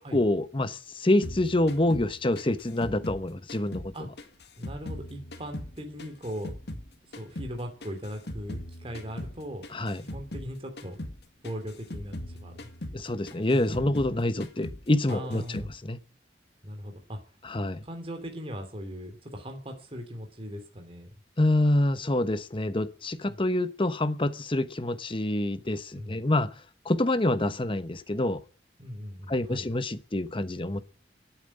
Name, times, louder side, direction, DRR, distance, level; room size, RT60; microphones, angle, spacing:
voice 1, 0.0-3.9 9.7-10.0 12.9-16.0 17.4-17.8 21.4-26.5 26.8-28.4 29.3-30.8, left 1 dB, 30° left, 1.0 m, -27 dB
sound 1, 1.2-3.9 4.2-6.9 7.1-10.5 10.8-11.2 11.4-14.2 14.4-14.8 15.1-15.7, left 1 dB, 65° left, 2.1 m, -40 dB
voice 2, 4.6-6.5 7.2-9.6 10.0-11.0 11.4-12.5 13.5-14.0 15.1-15.7 16.6-17.2 17.8-21.1 23.3-23.4 26.0-26.2 28.8-29.7, equal, 30° right, 2.8 m, -39 dB
11.5 x 9.1 x 9.9 m
head